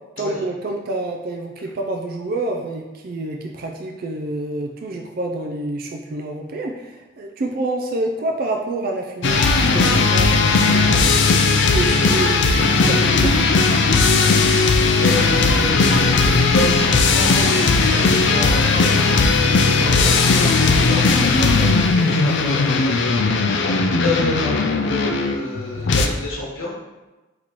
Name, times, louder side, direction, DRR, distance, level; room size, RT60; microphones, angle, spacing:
voice 1, 0.2-13.4, right 2 dB, 45° right, 2 dB, 0.3 m, -28 dB
sound 1, 9.2-26.1, left 4 dB, 55° left, 0.4 m, -17 dB
voice 2, 15.0-23.2 23.5-26.7, left 2 dB, 90° left, -4 dB, 1.0 m, -29 dB
4.0 x 2.9 x 4.5 m, 1.1 s
head